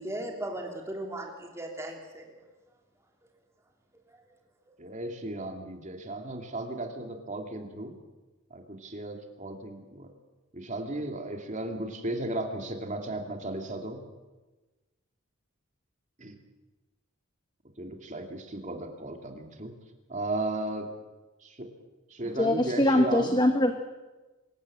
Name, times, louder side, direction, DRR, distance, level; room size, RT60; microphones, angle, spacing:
voice 1, 0.0-2.2 4.7-4.8, right 1 dB, 15° right, 1 dB, 3.3 m, -37 dB
voice 2, 4.8-7.9 8.5-10.1 10.5-14.0 16.2-16.4 17.8-19.7 20.1-20.9 21.4-21.7 22.1-23.4, right 1 dB, 35° right, 4 dB, 2.6 m, -35 dB
voice 3, 22.4-23.7, left 1 dB, 20° left, 6 dB, 1.1 m, -23 dB
25.0 x 14.0 x 8.7 m, 1.2 s
head